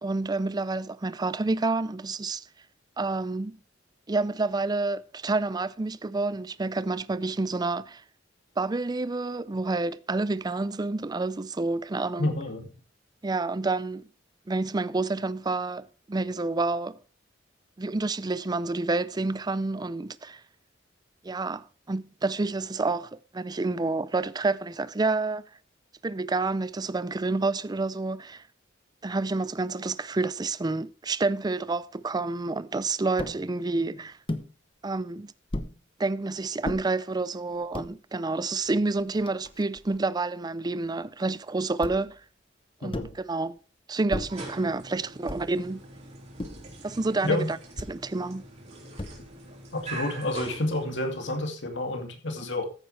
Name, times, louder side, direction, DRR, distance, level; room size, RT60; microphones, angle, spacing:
voice 1, 0.0-2.4 3.0-3.6 4.1-8.0 8.6-12.3 13.2-14.1 14.5-17.0 17.8-20.4 21.2-25.5 26.0-28.4 29.0-34.2 34.8-35.3 36.0-42.2 42.8-43.6 43.9-45.8 46.8-47.6 47.9-48.4, right 3 dB, 20° right, 0.4 m, -29 dB
voice 2, 12.2-12.7 42.8-43.1 47.2-47.5 49.7-52.7, left 1 dB, 70° left, 2.5 m, -29 dB
sound 1, 33.2-33.4 34.3-34.5 35.5-35.8 36.6-36.8 37.5-37.9 38.7-38.8 39.0-40.0 41.8-42.2 42.9-43.2 44.1-44.4 45.3-45.6 46.4-46.7 47.8-48.0 49.0-49.4, left 1 dB, 30° left, 0.9 m, -35 dB
sound 2, 44.1-51.4, right 2 dB, 35° right, 4.4 m, -44 dB
14.0 x 9.7 x 3.3 m
head